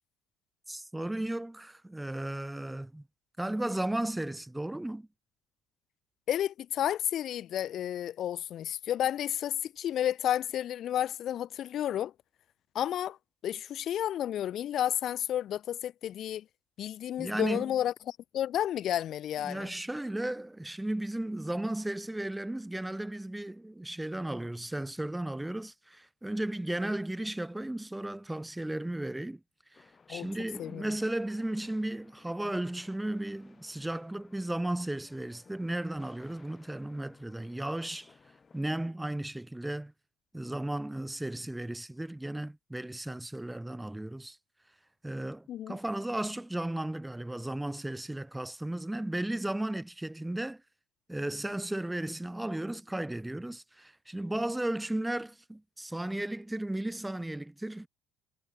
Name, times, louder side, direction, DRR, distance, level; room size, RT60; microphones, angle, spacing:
voice 1, 0.7-3.0 3.4-5.1 17.2-17.7 19.4-29.4 29.7-38.1 38.5-39.9 40.3-44.4 45.0-50.6 51.1-57.9, right 1 dB, 10° right, 0.7 m, -35 dB
voice 2, 6.3-12.1 12.7-13.2 13.4-16.4 16.8-19.7 30.1-30.3 30.6-30.8 45.5-45.8, left 11 dB, 55° left, 0.4 m, -31 dB
sound 1, 29.7-38.7, left 5 dB, 30° left, 1.7 m, -59 dB
hypercardioid pair, 65°, 0 cm